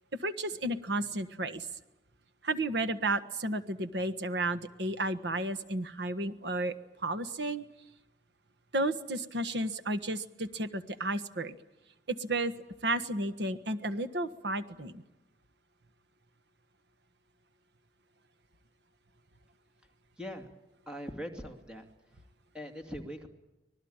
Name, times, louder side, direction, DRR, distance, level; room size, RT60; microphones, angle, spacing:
voice 1, 0.1-1.7 2.4-6.7 7.0-7.6 8.7-11.6 12.1-12.5 12.8-15.0, right 2 dB, 80° right, 11 dB, 1.4 m, -32 dB
voice 2, 20.2-20.5 20.9-21.8 22.5-23.3, equal, 5° right, 4 dB, 2.5 m, -41 dB
25.5 x 19.0 x 8.9 m, 0.98 s
head